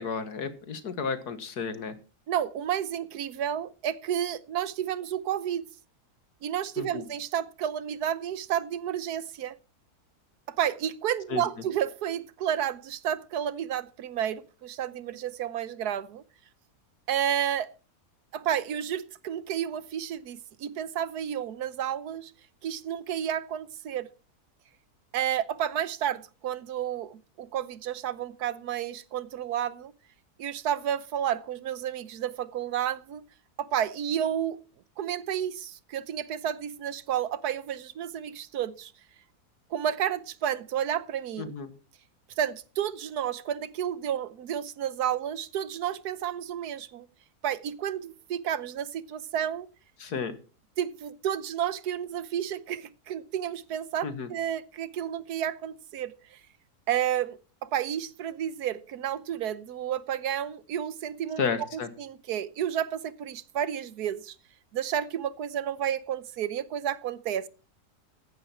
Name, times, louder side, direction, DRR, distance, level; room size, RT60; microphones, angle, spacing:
voice 1, 0.0-2.0 6.8-7.0 11.3-11.4 41.4-41.7 50.0-50.4 54.0-54.3 61.4-61.9, left 5 dB, 85° left, 2.1 m, -32 dB
voice 2, 2.3-5.6 6.4-9.5 10.5-16.2 17.1-17.7 18.3-22.3 22.6-24.1 25.1-29.9 30.4-33.2 33.6-34.6 35.0-38.9 39.7-41.5 42.4-47.1 47.4-49.7 50.8-56.4 56.9-61.4 62.0-64.3 64.7-67.5, right 10 dB, 85° right, 1.4 m, -31 dB
15.0 x 10.5 x 4.5 m
omnidirectional pair, 1.6 m